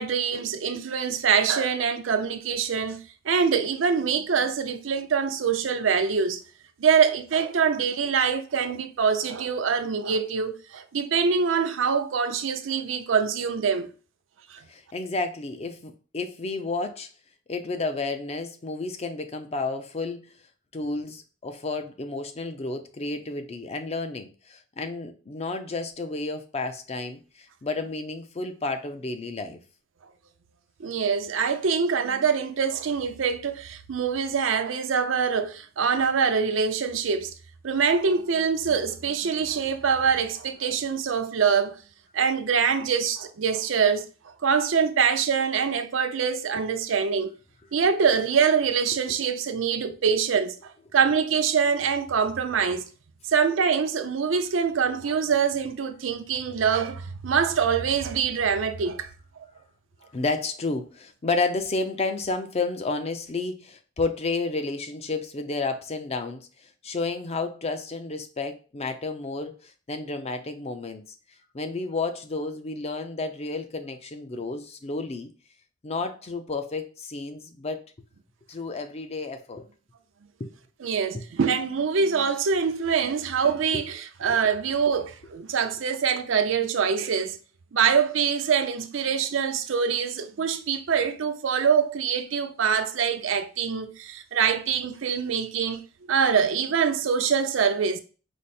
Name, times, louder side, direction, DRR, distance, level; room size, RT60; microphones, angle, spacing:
voice 1, 0.0-3.0 3.2-6.4 6.8-13.9 14.5-14.6 30.8-37.3 37.6-41.8 42.1-47.3 47.7-52.9 53.3-59.1 80.8-87.4 87.7-95.8 96.1-98.0, right 6 dB, 80° right, 0.5 m, -24 dB
voice 2, 14.7-17.1 17.5-20.2 20.7-29.6 60.1-71.0 71.5-75.3 75.8-77.8 78.5-79.6 80.4-80.5 81.1-81.2 83.7-83.8 84.2-84.4, left 3 dB, 35° left, 0.5 m, -31 dB
4.9 x 2.0 x 4.2 m
head